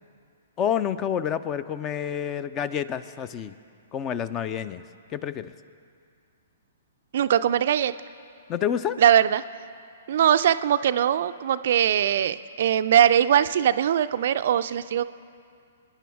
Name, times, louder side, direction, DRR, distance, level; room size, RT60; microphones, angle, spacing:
voice 1, 0.6-3.5 3.9-4.8 5.1-5.5 8.5-9.0, left 9 dB, 25° left, 15 dB, 0.5 m, -28 dB
voice 2, 7.1-7.9 9.0-9.4 10.1-15.0, right 10 dB, 55° right, 12 dB, 0.4 m, -21 dB
27.0 x 10.0 x 3.5 m, 2.3 s
figure-of-eight pair, 115°, 0 cm